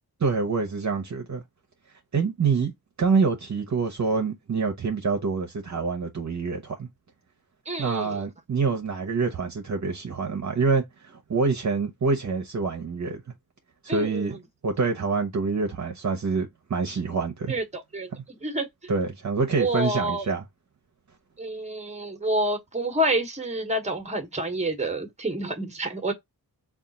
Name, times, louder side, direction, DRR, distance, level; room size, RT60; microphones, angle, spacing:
voice 1, 0.2-1.4 2.1-2.7 3.0-6.9 7.8-13.2 13.8-14.4 14.6-17.5 18.9-20.5, right 4 dB, 50° right, 0.8 m, -26 dB
voice 2, 7.7-8.1 13.9-14.3 17.5-18.1 18.4-18.7 19.6-20.2 21.4-26.1, right 1 dB, 20° right, 1.1 m, -28 dB
3.5 x 2.4 x 4.0 m
wide cardioid pair, 95°, 37 cm